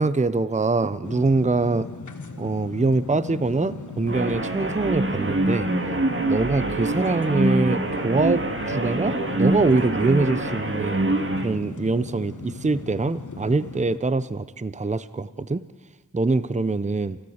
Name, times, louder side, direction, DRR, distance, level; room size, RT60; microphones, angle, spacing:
voice 1, 0.0-1.9 2.4-5.7 6.2-11.0 11.4-15.6 16.1-17.2, right 3 dB, 25° right, 15 dB, 0.7 m, -24 dB
sound 1, 1.0-14.0, left 4 dB, 75° left, 1.7 m, -38 dB
sound 2, 4.1-11.5, right 2 dB, 40° right, 2.3 m, -25 dB
29.0 x 13.5 x 8.1 m, 1.3 s
cardioid pair, 45°, 30 cm